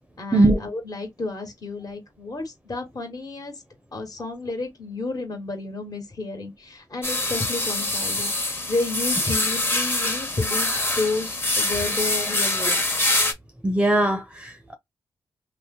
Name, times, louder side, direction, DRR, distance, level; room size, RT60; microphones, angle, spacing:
voice 1, 0.2-3.5 3.9-12.9, left 3 dB, 45° left, 1.5 m, -31 dB
sound 1, 7.0-13.3, left 2 dB, 25° left, 1.2 m, -24 dB
voice 2, 13.6-14.7, right 2 dB, 15° right, 0.7 m, -20 dB
2.8 x 2.0 x 3.7 m
supercardioid pair, 45°, 9 cm